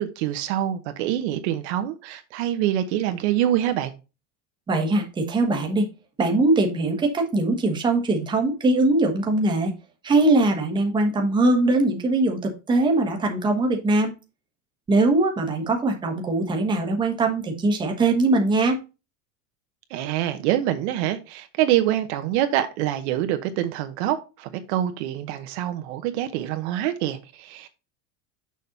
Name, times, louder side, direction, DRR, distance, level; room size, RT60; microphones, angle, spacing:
voice 1, 0.0-3.9 19.9-27.7, right 12 dB, 60° right, 1.0 m, -25 dB
voice 2, 4.7-5.9 6.2-9.7 10.0-14.1 14.9-18.8, right 2 dB, 10° right, 1.2 m, -21 dB
6.5 x 5.3 x 4.0 m
supercardioid pair, 165°, 37 cm